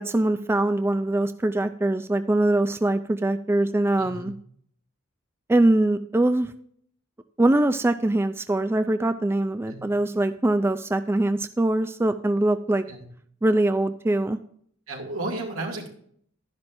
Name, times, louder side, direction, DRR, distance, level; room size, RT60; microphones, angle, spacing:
voice 1, 0.0-4.3 5.5-6.5 7.4-12.8 13.4-14.4, right 1 dB, 10° right, 10 dB, 0.3 m, -23 dB
voice 2, 4.0-4.3 9.7-9.8 12.9-13.0 14.9-15.9, right 2 dB, 80° right, 1 dB, 2.6 m, -33 dB
12.0 x 10.5 x 2.6 m, 0.63 s
head